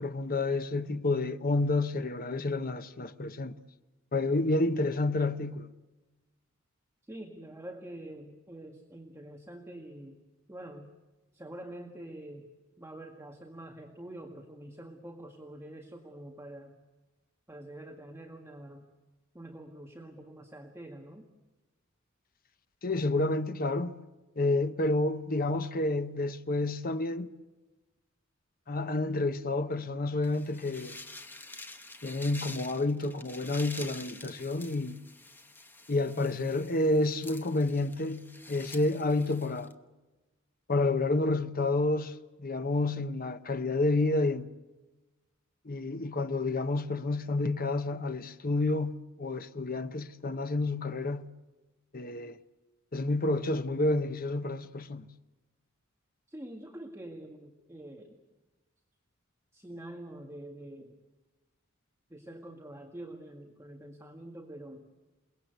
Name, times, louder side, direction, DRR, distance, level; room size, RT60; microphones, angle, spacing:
voice 1, 0.0-3.5 4.1-5.7 22.8-23.9 24.4-27.3 28.7-31.0 32.0-35.0 35.9-39.7 40.7-44.5 45.6-51.3 51.9-52.4 52.9-55.1, left 2 dB, 45° left, 1.0 m, -29 dB
voice 2, 7.0-10.2 10.5-10.9 11.3-12.5 12.8-16.7 17.5-18.9 19.3-21.3 56.3-58.2 59.5-60.9 62.1-64.9, right 1 dB, 15° right, 1.8 m, -46 dB
sound 1, 30.2-39.7, left 2 dB, 10° left, 1.2 m, -48 dB
28.5 x 19.5 x 8.1 m
head